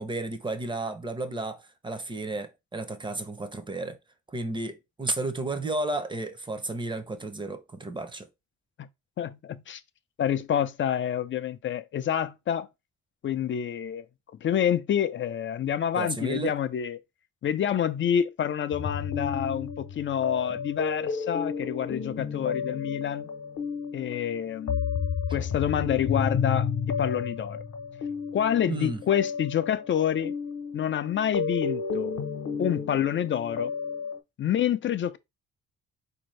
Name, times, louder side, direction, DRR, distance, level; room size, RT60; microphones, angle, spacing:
voice 1, 0.0-4.0 4.3-8.3 15.9-16.5 20.5-20.6 28.7-29.0, right 2 dB, 15° right, 0.6 m, -32 dB
voice 2, 9.2-9.8 10.2-12.7 13.2-14.1 14.4-17.0 17.4-23.3 23.9-24.8 25.3-27.6 28.3-30.4 30.7-32.1 32.6-33.7 34.4-35.2, left 9 dB, 40° left, 0.4 m, -28 dB
sound 1, 18.7-34.2, left 6 dB, 60° left, 0.9 m, -32 dB
3.9 x 2.7 x 3.1 m
cardioid pair, 90°, 30 cm